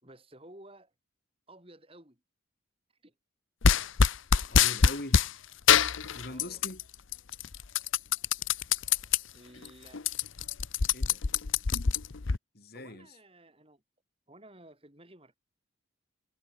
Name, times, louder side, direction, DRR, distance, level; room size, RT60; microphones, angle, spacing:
voice 1, 0.0-0.9 1.5-2.2 3.0-3.1 6.3-6.6 9.3-10.0 12.7-13.8 14.3-15.3, right 1 dB, 25° right, 5.2 m, -54 dB
sound 1, 3.6-5.3 5.7-6.8 7.1-9.2 9.6-9.7 9.9-12.4, left 6 dB, 75° left, 0.8 m, -24 dB
voice 2, 4.5-5.2 6.1-6.8 10.9-11.2 12.5-13.1, left 1 dB, 50° left, 3.1 m, -42 dB
head